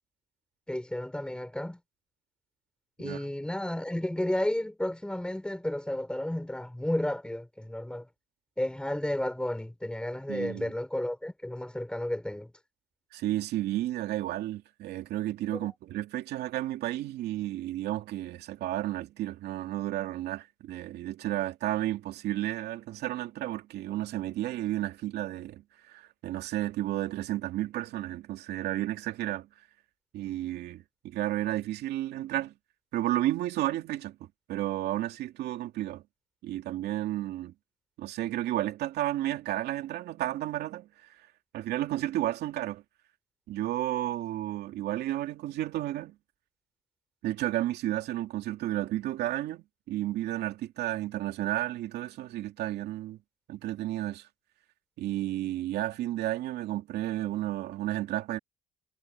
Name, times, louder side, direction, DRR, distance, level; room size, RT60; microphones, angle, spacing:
voice 1, 0.7-1.8 3.0-8.1 8.6-12.5 15.5-15.7, left 1 dB, 5° left, 6.0 m, -32 dB
voice 2, 10.3-10.7 13.1-29.5 30.1-32.5 32.9-36.0 36.4-37.5 38.0-41.3 41.5-42.8 43.5-46.1 47.2-53.2 53.5-54.3 55.0-58.4, right 14 dB, 75° right, 2.5 m, -32 dB
cardioid pair, 110°, 17 cm